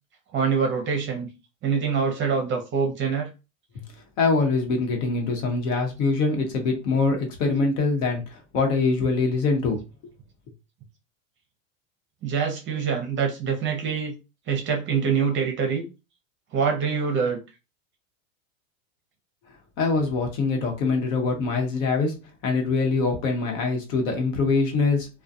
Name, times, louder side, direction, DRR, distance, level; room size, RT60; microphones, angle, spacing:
voice 1, 0.3-1.3 1.6-3.3 12.2-14.1 14.5-15.8 16.5-17.4, right 6 dB, 30° right, 0.7 m, -25 dB
voice 2, 4.2-9.8 19.8-22.2 22.4-25.1, left 4 dB, 65° left, 1.1 m, -24 dB
2.3 x 2.3 x 2.6 m
supercardioid pair, 120°, 41 cm